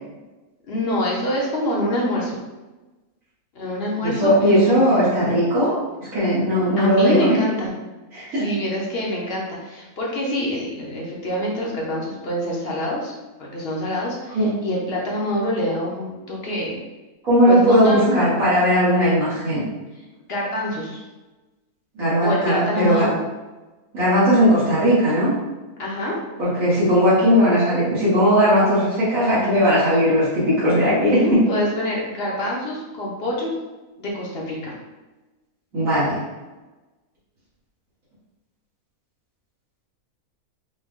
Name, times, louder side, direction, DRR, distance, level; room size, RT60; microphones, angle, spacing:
voice 1, 0.7-2.4 3.5-4.9 6.4-7.7 8.3-13.1 13.4-16.8 17.5-18.3 20.0-21.0 22.2-23.2 25.8-26.2 31.1-33.5 34.0-34.7, left 1 dB, 50° left, -3 dB, 1.0 m, -26 dB
voice 2, 4.0-5.8 6.1-7.4 8.1-8.5 14.3-14.5 17.2-19.6 22.0-23.1 23.9-25.3 26.4-31.4 35.7-36.1, equal, 65° right, -11 dB, 1.9 m, -18 dB
5.4 x 2.2 x 3.6 m, 1.2 s
omnidirectional pair, 1.6 m